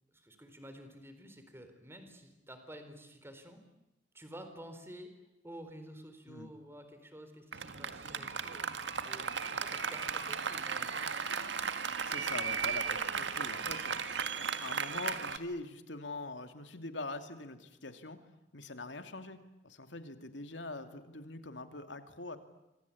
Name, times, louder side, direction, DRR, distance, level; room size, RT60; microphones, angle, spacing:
voice 1, 0.1-3.6 4.1-5.1 5.4-8.7 9.0-11.2, equal, 15° right, 8 dB, 4.1 m, -51 dB
Applause, 7.5-15.4, right 6 dB, 75° right, 1.9 m, -36 dB
voice 2, 12.0-14.0 14.4-18.2 18.5-22.4, left 2 dB, 85° left, 8 dB, 2.6 m, -43 dB
26.5 x 26.0 x 8.6 m, 0.92 s
head